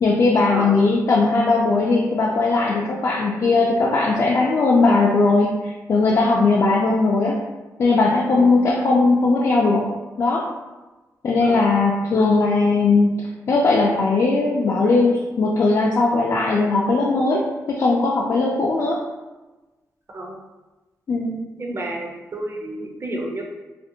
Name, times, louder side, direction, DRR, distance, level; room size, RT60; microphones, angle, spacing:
voice 1, 0.0-7.4 7.8-9.8 10.2-10.5 11.2-19.0 21.1-21.4, left 3 dB, 50° left, -3 dB, 0.3 m, -19 dB
voice 2, 21.6-23.4, right 1 dB, 40° right, 0 dB, 0.5 m, -30 dB
2.5 x 2.1 x 2.6 m, 1.1 s
cardioid pair, 75°, 6 cm